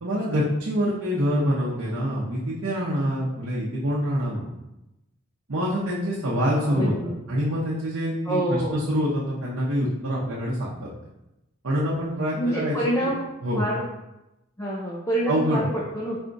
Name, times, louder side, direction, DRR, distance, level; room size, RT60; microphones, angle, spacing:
voice 1, 0.0-4.5 5.5-6.9 7.3-10.9 11.6-12.7 13.0-13.1 13.4-13.6 15.3-15.7, equal, 75° right, -7 dB, 0.8 m, -25 dB
voice 2, 6.5-7.2 8.2-8.9 12.3-13.2 13.6-13.9 14.6-16.2, right 1 dB, 15° left, -5 dB, 0.5 m, -27 dB
4.2 x 2.3 x 3.9 m, 0.93 s
head